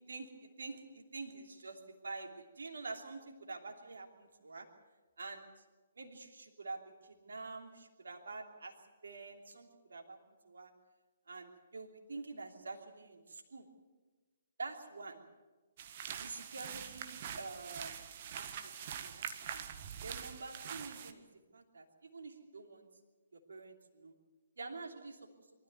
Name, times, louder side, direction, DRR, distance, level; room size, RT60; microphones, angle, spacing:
voice 1, 0.1-4.7 5.2-5.5 6.0-8.7 9.0-10.7 11.3-13.7 14.6-15.2 16.2-18.0 18.3-18.7 19.0-19.7 20.0-21.2 21.5-22.9 23.3-24.1 24.6-25.4, right 3 dB, 70° right, 3 dB, 3.0 m, -47 dB
sound 1, 15.8-21.1, right 8 dB, 45° right, 1.6 m, -44 dB
24.0 x 13.5 x 9.5 m, 1.3 s
figure-of-eight pair, 130°, 0 cm